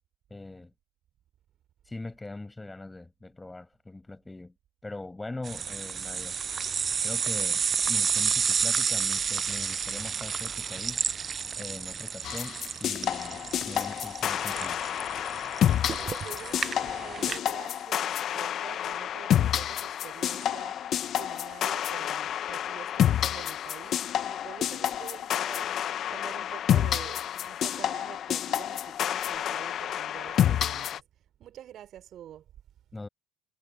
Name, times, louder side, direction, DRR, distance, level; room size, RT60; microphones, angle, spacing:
voice 1, 0.3-0.7 1.8-4.5 4.8-6.4 7.0-11.1 11.6-14.8 32.9-33.1, left 2 dB, 15° left, 6.6 m, -41 dB
sound 1, 5.4-17.4, right 6 dB, 40° right, 0.8 m, -31 dB
sound 2, 12.2-31.0, left 10 dB, 50° left, 1.7 m, -29 dB
voice 2, 15.9-32.5, right 11 dB, 55° right, 5.3 m, -47 dB
hypercardioid pair, 60°, 0 cm